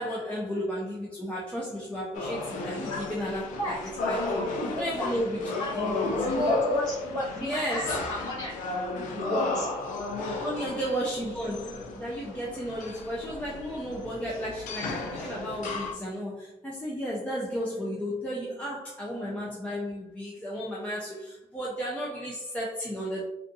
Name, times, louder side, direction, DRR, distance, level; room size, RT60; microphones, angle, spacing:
voice 1, 0.0-3.8 4.1-4.5 4.8-6.1 7.4-8.1 10.4-23.2, equal, 10° left, -6 dB, 0.5 m, -33 dB
sound 1, 2.1-15.9, left 2 dB, 90° left, 0.6 m, -33 dB
voice 2, 3.6-4.1 4.6-5.1 5.6-5.9 6.2-8.5 8.9-9.7, left 1 dB, 30° left, -6 dB, 1.3 m, -33 dB
3.4 x 2.6 x 2.6 m, 0.85 s
cardioid pair, 165°, 13 cm